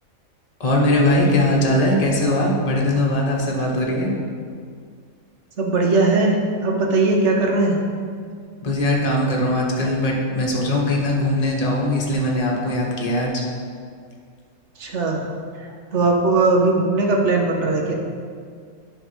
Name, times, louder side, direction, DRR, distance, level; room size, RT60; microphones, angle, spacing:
voice 1, 0.6-4.1 8.6-13.4, left 1 dB, 30° left, -2 dB, 1.1 m, -20 dB
voice 2, 5.6-7.8 14.8-15.3 15.6-17.9, right 3 dB, 55° right, 1 dB, 1.2 m, -19 dB
9.6 x 3.6 x 6.1 m, 2.1 s
omnidirectional pair, 1.5 m